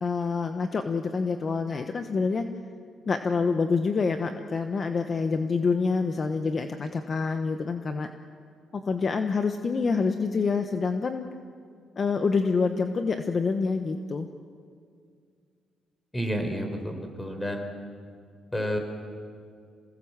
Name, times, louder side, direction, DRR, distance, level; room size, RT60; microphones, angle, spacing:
voice 1, 0.0-2.4 3.1-8.1 8.7-11.3 12.0-14.3, left 4 dB, 40° left, 7 dB, 1.2 m, -27 dB
voice 2, 16.1-17.7 18.5-18.8, equal, 15° left, 5 dB, 4.3 m, -30 dB
27.5 x 18.0 x 7.5 m, 2.2 s
cardioid pair, 90°, 0 cm